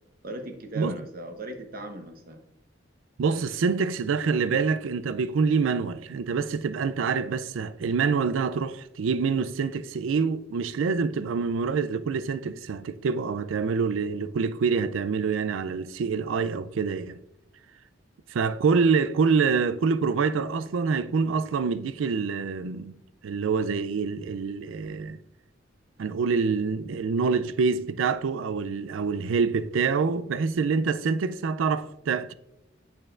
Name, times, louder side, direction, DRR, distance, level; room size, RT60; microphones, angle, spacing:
voice 1, 0.2-2.4, right 2 dB, 50° right, 1.0 m, -38 dB
voice 2, 3.2-17.2 18.3-22.9 23.2-25.2 26.0-32.3, right 5 dB, 85° right, 0.4 m, -26 dB
8.4 x 6.6 x 2.5 m
head